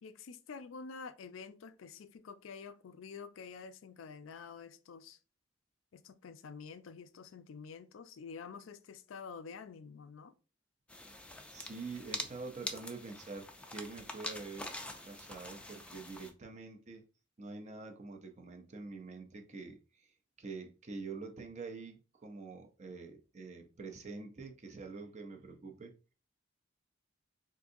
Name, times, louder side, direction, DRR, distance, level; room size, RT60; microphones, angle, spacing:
voice 1, 0.0-5.2 5.9-10.3, left 5 dB, 85° left, 0.4 m, -48 dB
sound 1, 10.9-16.3, left 1 dB, 5° left, 0.3 m, -45 dB
voice 2, 11.5-14.7 15.1-17.0 17.4-20.1 20.4-25.9, right 4 dB, 35° right, 0.6 m, -46 dB
3.7 x 2.6 x 2.6 m
head